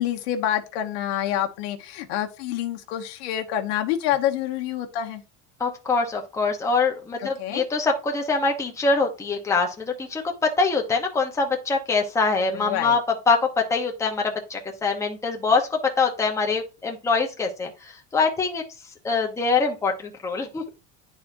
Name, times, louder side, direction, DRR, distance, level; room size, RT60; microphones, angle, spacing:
voice 1, 0.0-5.2 7.4-7.6 12.5-13.0, left 11 dB, 85° left, 1.2 m, -27 dB
voice 2, 5.6-13.0 13.3-18.6 19.0-20.7, left 4 dB, 10° left, 0.9 m, -24 dB
10.5 x 4.2 x 2.6 m
cardioid pair, 160°, 31 cm